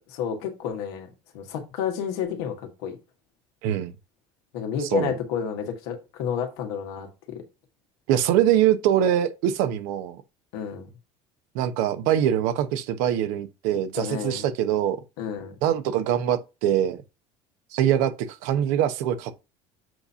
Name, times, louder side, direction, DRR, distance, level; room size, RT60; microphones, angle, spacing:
voice 1, 0.2-1.1 1.3-2.9 4.5-7.4 10.5-10.9 13.9-14.4 15.2-15.5, left 7 dB, 85° left, 1.7 m, -30 dB
voice 2, 3.6-3.9 4.8-5.1 8.1-10.2 11.5-15.0 15.6-17.0 17.7-19.3, right 10 dB, 75° right, 1.0 m, -23 dB
7.7 x 2.8 x 5.6 m
supercardioid pair, 110°, 14 cm